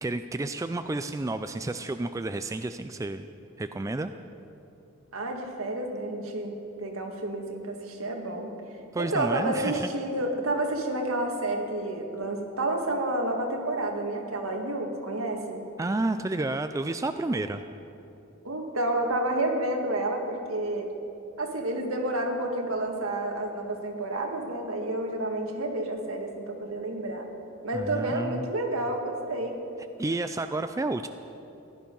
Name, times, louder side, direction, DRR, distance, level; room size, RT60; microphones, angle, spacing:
voice 1, 0.0-3.3 3.6-4.1 8.9-9.9 15.8-17.6 27.7-28.5 30.0-31.1, right 2 dB, 15° right, 9 dB, 0.3 m, -30 dB
voice 2, 5.1-8.5 9.0-15.6 18.4-20.9 21.4-27.3 27.6-29.6, right 1 dB, 75° right, 2 dB, 1.8 m, -30 dB
16.0 x 11.5 x 5.4 m, 2.8 s
head